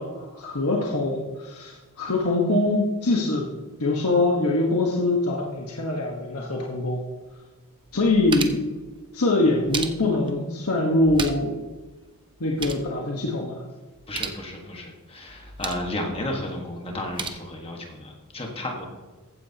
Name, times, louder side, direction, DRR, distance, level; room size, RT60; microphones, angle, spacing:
voice 1, 0.0-3.5 3.8-7.0 7.9-8.7 9.1-11.5 12.4-13.6, left 2 dB, 75° left, -1 dB, 1.3 m, -23 dB
sound 1, 7.3-7.4 7.8-8.7 9.4-10.3 10.9-11.6 11.9-12.0 12.3-12.9 13.9-14.4 15.3-15.9 16.9-17.3, right 4 dB, 20° right, 0.7 m, -34 dB
voice 2, 14.1-18.9, left 1 dB, 25° left, 1 dB, 1.5 m, -33 dB
15.0 x 9.0 x 2.9 m, 1.2 s
head